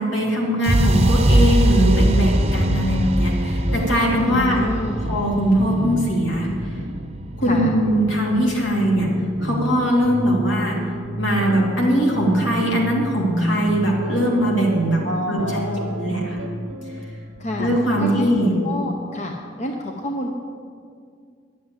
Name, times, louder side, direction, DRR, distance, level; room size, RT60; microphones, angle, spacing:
voice 1, 0.0-4.7 5.0-6.5 7.4-9.1 9.4-10.8 11.2-15.0 15.3-15.6 15.9-16.4 17.6-18.5, equal, 75° left, -3 dB, 3.0 m, -20 dB
sound 1, 0.6-8.6, right 1 dB, 35° right, 0.9 m, -21 dB
sound 2, 1.8-18.5, equal, 85° right, 1.4 m, -32 dB
voice 2, 4.3-5.0 7.4-7.7 15.0-15.9 17.4-17.7 18.0-18.3 18.6-19.3 19.6-20.3, left 1 dB, 35° left, 2 dB, 0.8 m, -28 dB
11.0 x 7.6 x 9.0 m, 2.2 s
head